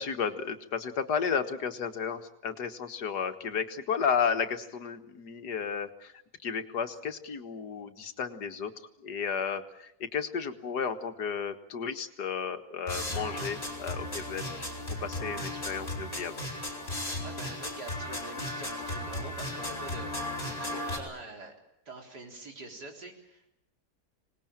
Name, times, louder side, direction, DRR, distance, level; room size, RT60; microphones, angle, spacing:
voice 1, 0.0-6.1 6.4-8.7 9.0-14.4 15.0-16.3, left 6 dB, 85° left, 8 dB, 2.1 m, -33 dB
sound 1, 12.9-21.0, left 1 dB, 35° left, 5.1 m, -36 dB
voice 2, 17.2-20.2 20.4-21.5 21.9-23.5, right 2 dB, 80° right, 2 dB, 4.5 m, -45 dB
25.5 x 19.5 x 8.9 m, 0.81 s
omnidirectional pair, 1.7 m